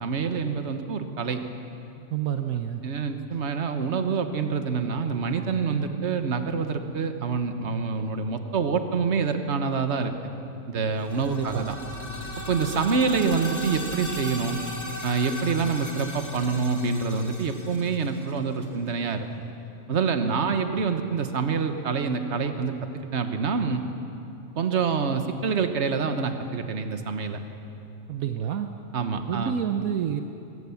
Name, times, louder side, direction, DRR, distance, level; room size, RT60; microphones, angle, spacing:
voice 1, 0.0-1.4 2.8-10.1 10.7-11.7 12.5-14.6 15.0-19.3 19.9-22.7 23.1-23.8 24.6-27.4 28.9-29.5, right 5 dB, 50° right, 7 dB, 1.5 m, -26 dB
voice 2, 2.1-2.8 11.2-11.7 28.1-28.7 29.3-30.2, right 9 dB, 75° right, 7 dB, 1.3 m, -28 dB
sound 1, 10.9-18.8, left 1 dB, 10° left, 1.9 m, -38 dB
24.0 x 18.5 x 7.2 m, 2.8 s
omnidirectional pair, 1.5 m